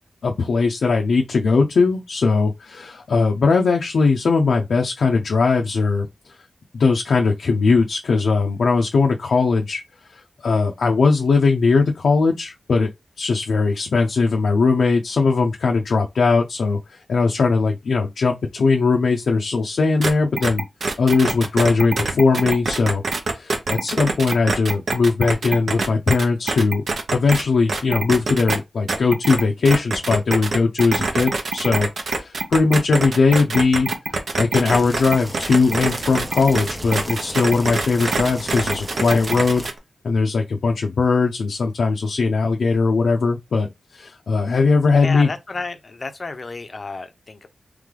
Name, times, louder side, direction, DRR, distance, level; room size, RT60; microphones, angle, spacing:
voice 1, 0.2-6.1 6.7-9.8 10.1-12.9 13.2-20.6 21.0-23.0 23.3-26.8 27.1-39.7 40.0-43.7 43.9-45.3, left 4 dB, 70° left, 0.6 m, -19 dB
sound 1, 20.0-20.1 20.4-27.4 27.7-28.6 28.9-39.8, right 3 dB, 60° right, 0.8 m, -24 dB
sound 2, 34.7-39.7, right 1 dB, 15° right, 0.5 m, -35 dB
voice 2, 45.0-47.5, left 3 dB, 35° left, 0.7 m, -31 dB
3.3 x 3.2 x 3.7 m
wide cardioid pair, 170°, 0 cm